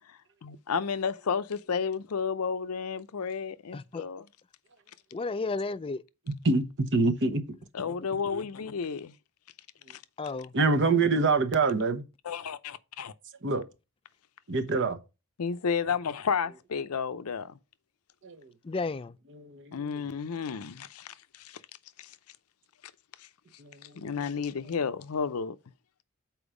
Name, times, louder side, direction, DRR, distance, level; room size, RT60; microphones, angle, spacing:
voice 1, 0.1-4.3 7.0-7.1 7.7-9.1 9.9-10.0 12.2-13.1 15.4-17.6 19.7-21.6 22.0-22.2 23.2-23.3 23.9-25.6, left 6 dB, 85° left, 0.6 m, -32 dB
voice 2, 3.7-4.0 5.1-6.0 10.2-10.5 18.6-19.1, left 3 dB, 25° left, 0.3 m, -32 dB
voice 3, 6.9-7.4 10.5-12.0 13.4-13.6 14.5-15.0 18.2-18.4 19.3-20.0 23.6-24.0, right 3 dB, 55° right, 0.9 m, -25 dB
7.0 x 4.5 x 4.9 m
head